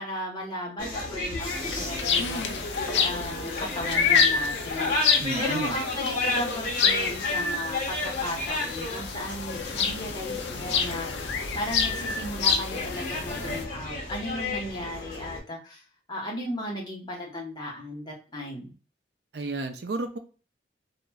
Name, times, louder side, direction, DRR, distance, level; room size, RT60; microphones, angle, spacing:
voice 1, 0.0-2.7 2.9-15.8 16.1-18.7, left 1 dB, 25° left, -3 dB, 1.1 m, -36 dB
sound 1, 0.8-15.4, left 2 dB, 50° left, 1.0 m, -33 dB
sound 2, 1.4-13.6, left 6 dB, 80° left, 0.5 m, -28 dB
voice 2, 5.2-5.8 19.3-20.2, right 2 dB, 70° right, 6 dB, 0.5 m, -32 dB
2.9 x 2.4 x 2.2 m, 0.36 s
head